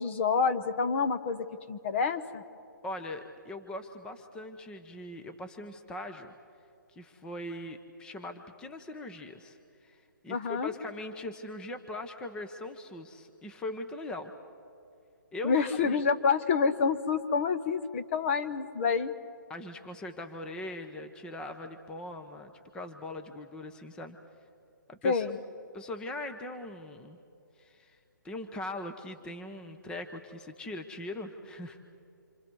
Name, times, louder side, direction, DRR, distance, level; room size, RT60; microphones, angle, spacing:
voice 1, 0.0-2.4 10.3-10.7 15.4-19.1 25.0-25.4, left 5 dB, 35° left, 10 dB, 1.0 m, -28 dB
voice 2, 2.8-6.3 6.9-9.6 9.8-14.3 15.3-15.5 15.8-16.0 19.5-24.2 24.9-25.3 25.7-27.2 27.6-28.0 28.2-31.8, left 1 dB, 10° left, 6 dB, 0.8 m, -41 dB
27.5 x 27.0 x 4.7 m, 2.6 s
hypercardioid pair, 150°, 11 cm